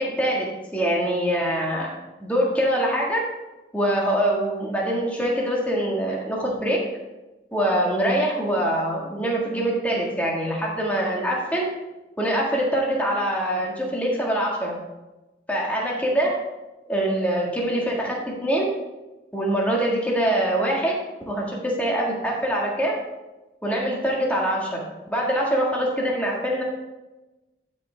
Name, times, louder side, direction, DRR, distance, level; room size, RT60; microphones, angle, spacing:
voice 1, 0.0-1.9 2.2-3.2 3.7-6.8 7.5-11.6 12.2-14.8 15.5-16.3 16.9-18.6 19.3-20.9 21.3-22.9 23.6-26.6, right 1 dB, 10° left, -3 dB, 1.7 m, -24 dB
12.0 x 5.2 x 3.4 m, 1.1 s
head